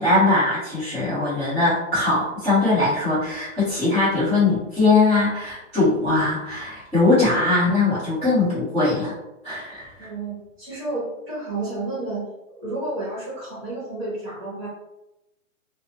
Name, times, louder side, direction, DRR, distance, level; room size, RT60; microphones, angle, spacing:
voice 1, 0.0-9.1 9.4-10.1, left 2 dB, ahead, -24 dB, 0.8 m, -21 dB
voice 2, 10.0-14.7, right 2 dB, 25° right, -7 dB, 1.1 m, -31 dB
2.6 x 2.0 x 2.7 m, 0.93 s
hypercardioid pair, 175°, 39 cm